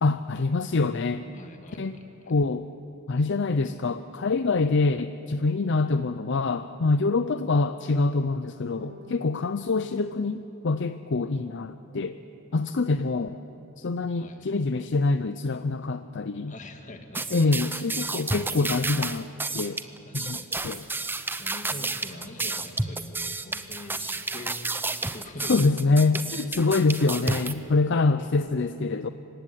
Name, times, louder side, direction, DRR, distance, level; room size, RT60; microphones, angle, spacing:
voice 1, 0.0-1.3 1.8-2.0 2.3-2.7 3.1-12.2 12.5-13.4 13.8-16.5 17.3-19.3 19.5-19.8 20.1-20.4 20.6-20.8 25.4-29.1, left 3 dB, 55° left, 11 dB, 0.6 m, -25 dB
voice 2, 1.3-2.3 14.2-14.5 16.5-17.3 20.1-20.6 21.4-24.6 25.1-25.6, left 1 dB, 35° left, 5 dB, 2.1 m, -43 dB
sound 1, 8.7-11.2, left 2 dB, 65° right, 7.1 m, -51 dB
sound 2, 17.1-27.5, right 3 dB, 10° right, 0.7 m, -31 dB
26.0 x 16.0 x 10.0 m, 3.0 s
head